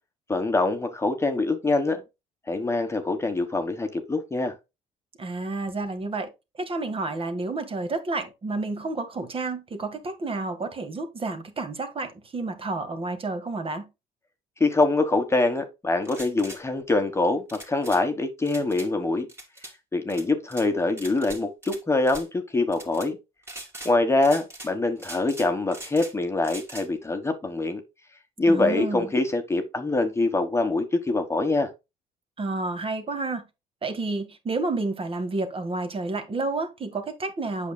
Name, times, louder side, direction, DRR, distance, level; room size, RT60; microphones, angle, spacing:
voice 1, 0.3-2.0 2.5-4.5 14.6-19.3 19.9-23.2 23.8-27.8 28.4-31.7, left 2 dB, 15° left, 1.3 m, -24 dB
voice 2, 5.2-13.9 28.4-29.1 32.4-33.4 33.8-37.7, right 3 dB, 35° right, 1.8 m, -30 dB
sound 1, 16.0-16.6 17.5-18.0 18.5-18.9 19.3-19.7 20.1-20.7 21.0-21.8 22.0-22.3 22.7-23.1 23.4-23.9 24.2-24.7 25.0-26.1 26.4-26.9, right 1 dB, 15° right, 2.5 m, -41 dB
8.2 x 6.5 x 2.3 m
cardioid pair, 110°, 17 cm